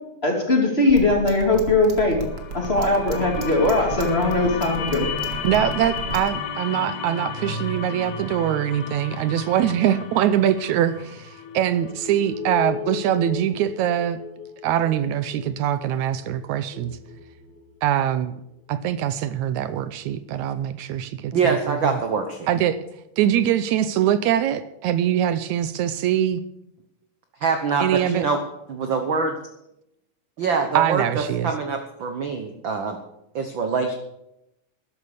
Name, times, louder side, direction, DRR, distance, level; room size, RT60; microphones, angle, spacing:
voice 1, 0.2-2.2 2.5-5.0, left 2 dB, 20° left, 1 dB, 2.6 m, -20 dB
sound 1, 0.9-6.3, right 6 dB, 35° right, 1.9 m, -32 dB
sound 2, 2.0-2.1 2.3-18.3 18.7-18.8, left 5 dB, 80° left, 3.6 m, -37 dB
sound 3, 2.0-12.3, left 7 dB, 65° left, 2.3 m, -35 dB
voice 2, 5.4-14.2 14.6-17.0 17.8-18.3 18.7-22.0 22.5-22.8 23.2-26.4 27.8-28.2 30.8-31.5, right 10 dB, 80° right, 13 dB, 2.0 m, -23 dB
voice 3, 21.3-22.5 27.4-28.4 28.7-29.3 30.4-33.0 33.3-33.9, right 5 dB, 55° right, 6 dB, 1.5 m, -24 dB
13.0 x 11.0 x 6.6 m, 0.83 s
omnidirectional pair, 3.4 m